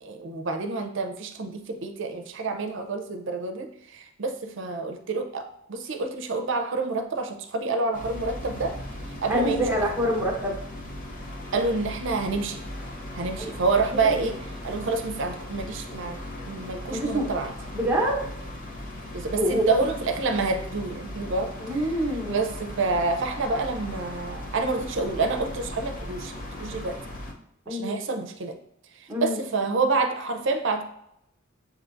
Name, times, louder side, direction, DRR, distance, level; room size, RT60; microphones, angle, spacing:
voice 1, 0.0-8.8 9.2-9.6 11.5-12.6 13.1-14.4 14.6-16.2 16.5-17.5 19.1-21.8 22.3-26.3 26.6-27.0 27.7-28.6 28.9-30.8, right 3 dB, 65° right, 5 dB, 0.5 m, -28 dB
sound 1, 7.9-27.3, left 1 dB, 40° left, 0.7 m, -38 dB
voice 2, 9.3-10.5 13.4-13.5 13.9-14.3 16.9-17.3 17.7-18.2 19.4-19.6 21.6-22.4 27.7-28.0 29.1-29.4, equal, 10° right, -3 dB, 1.0 m, -26 dB
7.2 x 2.7 x 2.5 m, 0.75 s
head